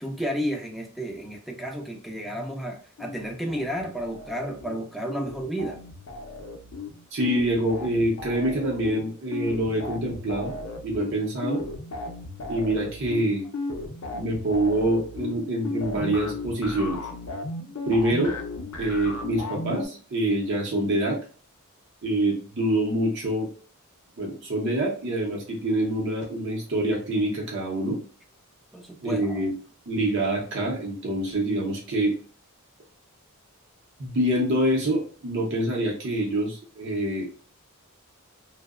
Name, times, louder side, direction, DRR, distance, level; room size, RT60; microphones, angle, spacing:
voice 1, 0.0-5.8 28.7-29.5, equal, ahead, 1 dB, 0.3 m, -32 dB
sound 1, 3.0-4.8 5.1-19.9, left 2 dB, 65° left, 0.5 m, -36 dB
voice 2, 7.1-10.5 10.8-11.6 12.5-13.5 14.1-17.0 17.9-18.4 18.8-21.2 22.0-23.5 24.2-28.0 29.0-29.5 29.9-32.2 34.0-37.5, right 1 dB, 55° right, -2 dB, 0.6 m, -26 dB
2.7 x 2.0 x 2.3 m, 0.43 s
head